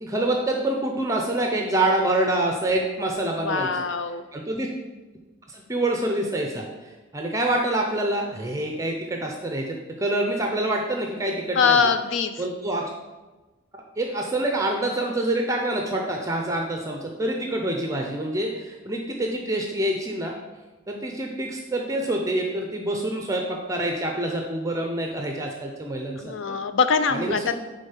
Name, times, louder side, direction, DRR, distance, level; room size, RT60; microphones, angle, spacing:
voice 1, 0.0-3.8 4.3-4.7 5.5-11.9 12.4-12.9 14.0-20.3 20.9-26.6 27.1-27.5, right 1 dB, 15° right, 2 dB, 0.6 m, -26 dB
voice 2, 3.4-4.2 11.6-12.3 26.2-27.6, left 5 dB, 65° left, 9 dB, 0.5 m, -23 dB
8.9 x 3.7 x 5.7 m, 1.2 s
head